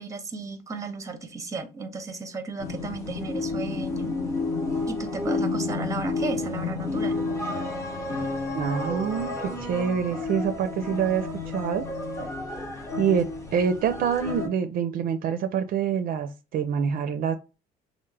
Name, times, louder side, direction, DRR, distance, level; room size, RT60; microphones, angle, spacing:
voice 1, 0.0-4.2 4.9-7.2, right 3 dB, 20° right, 0.6 m, -34 dB
sound 1, 2.6-14.5, left 3 dB, 15° left, 0.8 m, -31 dB
voice 2, 8.5-11.9 13.0-17.4, right 7 dB, 60° right, 0.4 m, -26 dB
3.2 x 2.1 x 3.2 m
cardioid pair, 110°, 17 cm